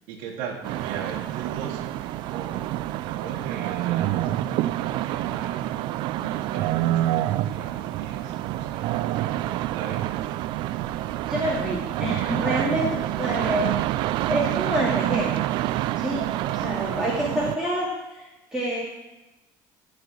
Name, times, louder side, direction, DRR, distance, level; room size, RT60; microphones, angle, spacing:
voice 1, 0.1-2.6 3.0-5.7 6.1-10.3, right 6 dB, 85° right, -2 dB, 1.4 m, -38 dB
sound 1, 0.6-17.6, right 14 dB, 65° right, 0.4 m, -27 dB
voice 2, 11.2-12.9 13.2-13.8 14.3-15.3 15.9-18.2 18.5-18.8, equal, 5° right, -7 dB, 2.5 m, -27 dB
13.5 x 5.0 x 7.8 m, 1.0 s
cardioid pair, 120°, 8 cm